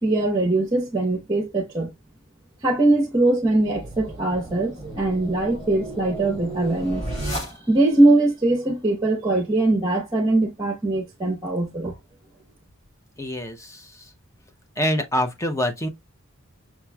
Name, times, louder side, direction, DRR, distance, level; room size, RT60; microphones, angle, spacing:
voice 1, 0.0-1.9 2.6-7.0 7.7-11.9, right 2 dB, 20° right, 0.9 m, -21 dB
sound 1, 3.4-8.0, right 1 dB, 30° left, 1.5 m, -34 dB
voice 2, 13.2-13.9 14.8-15.9, left 1 dB, 15° left, 0.6 m, -25 dB
5.9 x 2.9 x 2.3 m
head